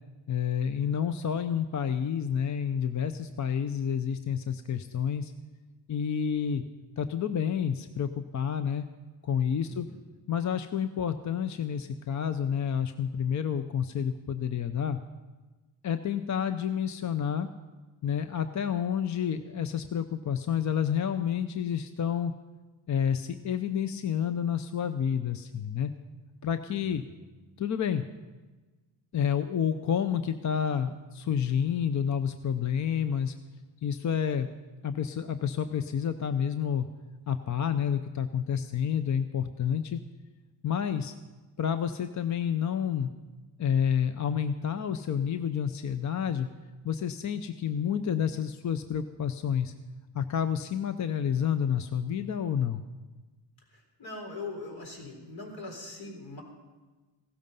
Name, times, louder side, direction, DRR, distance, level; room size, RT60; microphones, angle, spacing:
voice 1, 0.3-5.3 5.9-6.6 7.0-8.9 9.2-9.9 10.3-15.0 15.8-17.5 18.0-22.3 22.9-25.9 26.4-27.0 27.6-28.0 29.1-33.3 33.8-34.5 34.8-36.9 37.3-40.0 40.6-41.1 41.6-43.1 43.6-46.5 46.8-49.7 50.1-52.8, left 8 dB, 40° left, 10 dB, 0.6 m, -29 dB
voice 2, 9.6-10.0 26.7-27.1 53.7-56.4, left 3 dB, 70° left, 1 dB, 4.0 m, -42 dB
16.0 x 13.0 x 5.4 m, 1.2 s
cardioid pair, 105°, 47 cm